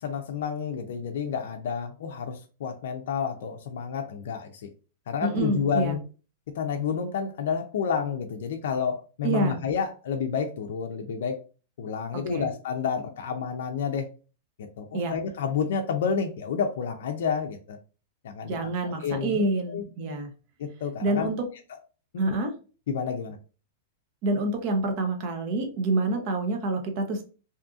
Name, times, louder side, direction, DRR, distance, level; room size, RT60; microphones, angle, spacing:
voice 1, 0.0-4.7 5.1-6.0 6.5-11.4 11.8-14.1 14.6-17.8 18.2-18.6 18.8-19.8 20.6-21.3 22.1-22.4 22.9-23.4, left 6 dB, 70° left, 3 dB, 0.4 m, -30 dB
voice 2, 5.2-5.9 9.2-9.6 12.3-12.5 14.9-15.2 18.4-20.3 21.0-21.4 22.2-22.5 24.2-27.2, right 2 dB, 45° right, 5 dB, 0.7 m, -27 dB
2.7 x 2.5 x 2.3 m, 0.35 s
supercardioid pair, 150°, 0 cm